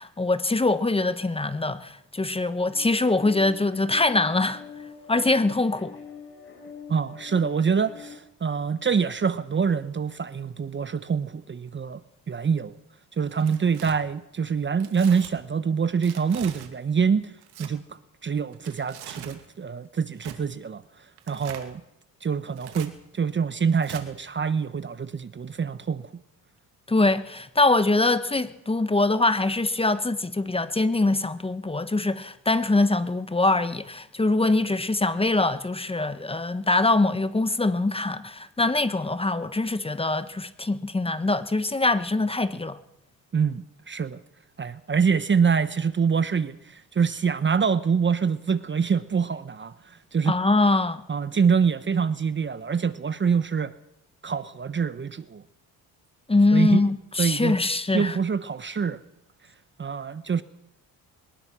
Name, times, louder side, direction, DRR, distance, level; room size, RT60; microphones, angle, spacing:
voice 1, 0.0-4.6 5.1-6.0 26.9-42.8 50.3-51.0 56.3-58.2, left 2 dB, 15° left, 1.2 m, -23 dB
sound 1, 2.7-8.1, left 6 dB, 30° left, 7.5 m, -44 dB
voice 2, 6.9-12.0 12.3-12.7 13.2-17.3 17.6-20.8 21.3-21.8 22.2-26.2 43.3-44.2 44.6-50.4 51.1-53.7 54.2-55.4 56.5-56.9 57.2-57.6 57.9-59.0 59.8-60.4, right 6 dB, 30° right, 1.0 m, -25 dB
Tearing, 13.3-13.9 14.8-15.3 16.0-16.7 17.4-17.7 18.5-19.4 20.2-20.4 21.2-21.7 22.5-22.9 23.8-24.0, right 11 dB, 85° right, 2.6 m, -42 dB
22.5 x 19.5 x 6.1 m
cardioid pair, 95°, 38 cm